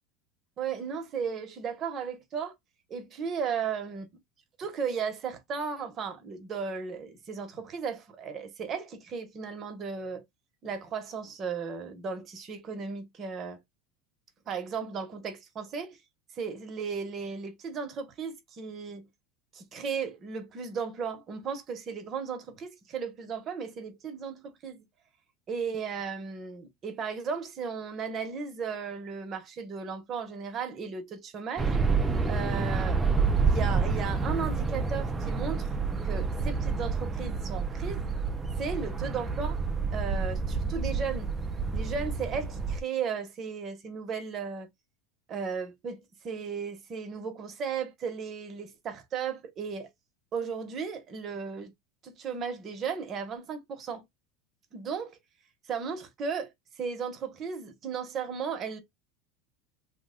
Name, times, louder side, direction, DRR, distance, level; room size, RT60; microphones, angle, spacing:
voice 1, 0.6-2.5 2.9-4.0 4.6-10.2 10.6-13.6 14.5-16.0 16.3-19.0 19.5-24.8 25.5-31.8 32.3-33.0 33.5-35.7 36.0-38.1 38.6-39.6 39.9-41.3 41.7-44.7 45.3-49.9 50.3-51.7 52.0-54.0 54.7-55.2 55.7-56.5 56.8-58.8, right 6 dB, 35° right, 0.8 m, -35 dB
sound 1, 31.6-42.8, right 4 dB, 15° right, 0.5 m, -29 dB
2.9 x 2.1 x 3.6 m
supercardioid pair, 140°, 0 cm